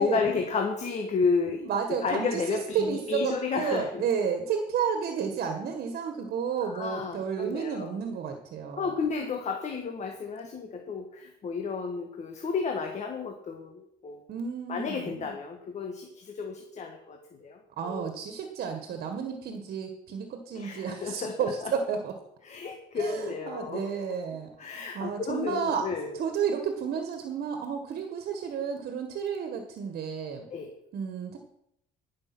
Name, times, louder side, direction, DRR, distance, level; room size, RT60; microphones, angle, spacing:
voice 1, 0.0-1.7 2.0-4.0 6.6-8.0 8.8-14.2 14.7-18.1 20.5-21.7 22.4-23.9 24.6-26.1 30.5-30.7, left 5 dB, 45° left, 3 dB, 1.5 m, -32 dB
voice 2, 1.7-8.9 14.3-15.3 17.8-22.1 23.0-25.9 26.1-30.5 30.9-31.4, right 6 dB, 60° right, 5 dB, 1.6 m, -31 dB
13.5 x 6.4 x 6.1 m, 0.78 s
cardioid pair, 110°, 17 cm